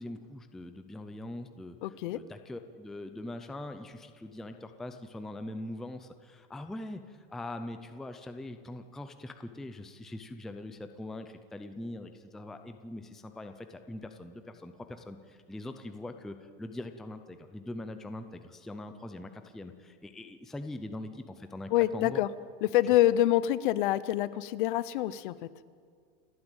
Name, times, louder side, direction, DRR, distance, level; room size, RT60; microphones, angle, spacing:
voice 1, 0.0-22.2, left 1 dB, ahead, 7 dB, 0.4 m, -42 dB
voice 2, 1.8-2.2 21.7-22.3 22.6-25.5, left 13 dB, 55° left, 17 dB, 0.8 m, -26 dB
29.5 x 9.9 x 9.0 m, 2.1 s
supercardioid pair, 165°, 30 cm